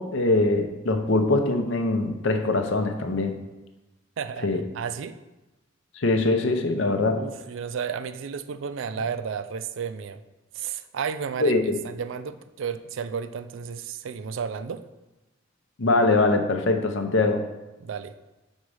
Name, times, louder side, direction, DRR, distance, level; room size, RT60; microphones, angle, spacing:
voice 1, 0.0-3.3 4.4-4.6 6.0-7.2 11.4-11.8 15.8-17.4, left 2 dB, 70° left, 6 dB, 0.7 m, -22 dB
voice 2, 4.2-5.2 7.1-10.2 10.5-11.6 11.8-14.8 17.8-18.1, right 6 dB, 70° right, 12 dB, 0.4 m, -32 dB
6.3 x 4.0 x 4.8 m, 1.1 s
head